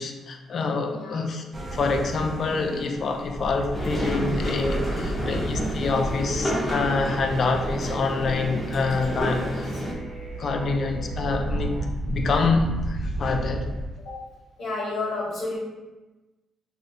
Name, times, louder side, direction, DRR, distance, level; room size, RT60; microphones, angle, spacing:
voice 1, 0.0-1.4 1.7-9.7 10.4-11.7 12.0-13.7, left 4 dB, 55° left, 5 dB, 0.4 m, -26 dB
voice 2, 0.9-1.2 9.4-9.6 14.0-14.2 14.6-15.6, left 3 dB, 75° left, -5 dB, 1.3 m, -31 dB
sound 1, 1.5-13.9, right 1 dB, 30° right, 0.6 m, -33 dB
sound 2, 3.7-9.9, equal, 20° left, 0.8 m, -30 dB
sound 3, 6.8-11.8, right 5 dB, 75° right, 0.7 m, -40 dB
3.2 x 2.6 x 2.7 m, 1.1 s
cardioid pair, 90°, 0 cm